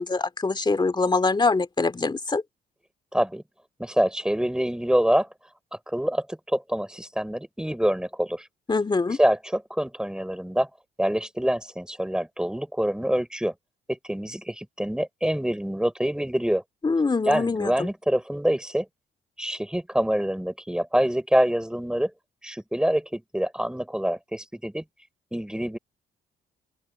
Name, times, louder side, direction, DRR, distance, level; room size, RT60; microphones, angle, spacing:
voice 1, 0.0-2.4 8.7-9.2 16.8-17.9, left 3 dB, 20° left, 2.6 m, -24 dB
voice 2, 3.1-3.4 3.8-5.3 5.9-8.4 9.2-10.7 11.0-13.5 13.9-16.6 17.3-18.9 19.4-22.1 22.4-24.8 25.3-25.8, equal, 5° right, 5.6 m, -25 dB
open air
cardioid pair, 90°, 20 cm